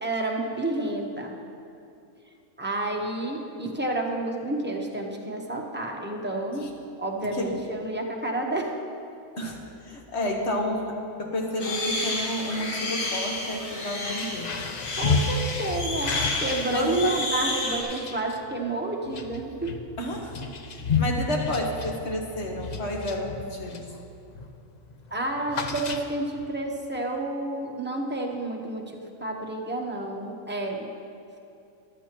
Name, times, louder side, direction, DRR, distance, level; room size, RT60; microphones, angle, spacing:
voice 1, 0.0-1.3 2.6-6.7 7.0-8.7 15.0-19.8 25.1-30.9, right 2 dB, 10° right, 0 dB, 0.8 m, -30 dB
voice 2, 9.4-14.5 16.7-17.2 20.0-23.8, left 1 dB, 50° left, 0 dB, 1.5 m, -31 dB
sound 1, 11.6-17.8, left 2 dB, 90° left, 2.1 m, -31 dB
sound 2, 14.0-24.0 24.3-24.6 24.9-26.4, left 4 dB, 70° left, 0.4 m, -31 dB
14.5 x 11.5 x 3.0 m, 2.6 s
omnidirectional pair, 1.5 m